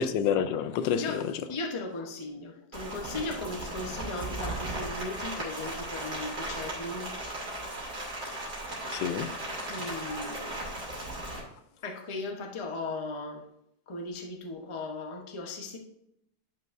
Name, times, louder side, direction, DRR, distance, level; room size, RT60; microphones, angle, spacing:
voice 1, 0.0-1.3 8.9-9.4 9.7-10.0 11.0-11.1, left 8 dB, 80° left, 1.2 m, -29 dB
voice 2, 1.0-7.1 9.7-10.8 11.8-13.4 13.9-15.8, left 2 dB, 25° left, 0.6 m, -37 dB
Rain, 2.7-11.4, right 1 dB, 60° right, 3.1 m, -36 dB
10.5 x 5.8 x 2.6 m
omnidirectional pair, 2.0 m